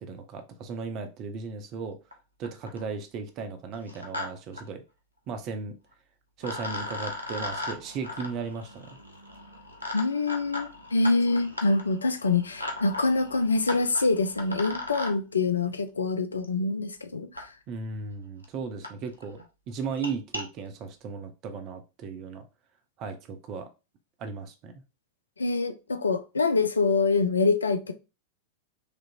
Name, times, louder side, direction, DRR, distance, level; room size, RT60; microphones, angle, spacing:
voice 1, 0.0-1.9 2.4-4.8 5.3-5.7 6.4-8.7 17.7-22.4 23.0-23.7 24.2-24.7, right 5 dB, 40° right, 0.9 m, -36 dB
sound 1, 2.1-2.2 2.4-2.9 3.7-4.3 4.5-4.6 5.9-6.0 6.4-15.1 16.4-16.5 17.4-17.5 18.1-18.2 18.4-18.5 18.8-18.9 19.2-19.4 19.8-20.4, left 2 dB, 90° right, 0.9 m, -37 dB
voice 2, 9.9-17.5 25.4-27.9, left 3 dB, 75° left, 0.5 m, -25 dB
5.1 x 3.0 x 2.6 m
figure-of-eight pair, 90°, 0 cm